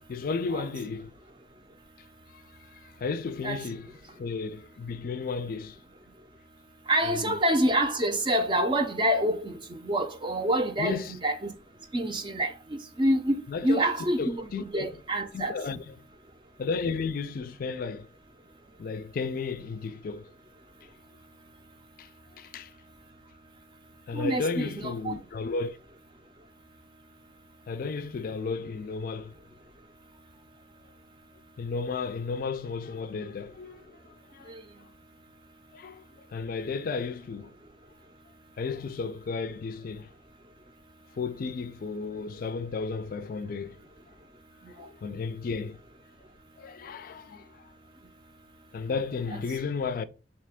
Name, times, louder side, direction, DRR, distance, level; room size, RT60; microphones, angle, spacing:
voice 1, 0.1-1.1 2.3-2.4 2.7-5.8 7.1-7.4 10.8-11.2 13.5-13.9 14.2-15.0 15.3-16.1 16.6-18.1 18.8-20.3 22.0-22.1 22.4-22.7 24.1-25.8 27.7-29.3 31.6-34.5 35.7-37.5 38.6-40.1 41.2-43.8 44.7-45.8 46.6-47.6 48.7-50.0, left 4 dB, 55° left, 0.4 m, -33 dB
voice 2, 6.9-11.5 11.9-12.5 13.0-15.6 24.1-25.1 34.5-34.6, right 1 dB, 30° right, 0.5 m, -27 dB
3.2 x 2.8 x 3.5 m
head